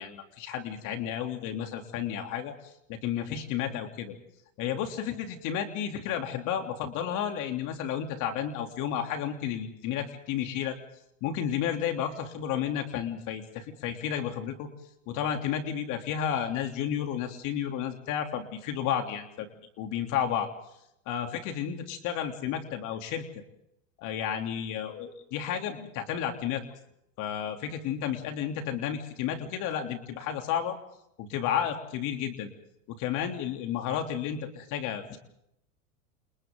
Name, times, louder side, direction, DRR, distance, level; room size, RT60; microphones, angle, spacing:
voice 1, 0.0-4.2 4.6-10.8 11.2-14.7 15.1-19.5 19.8-20.5 21.0-23.4 24.0-26.6 27.2-30.8 31.2-32.5 32.9-35.2, left 9 dB, 50° left, 4 dB, 3.4 m, -32 dB
29.5 x 28.5 x 3.9 m, 0.78 s
hypercardioid pair, 115°, 40 cm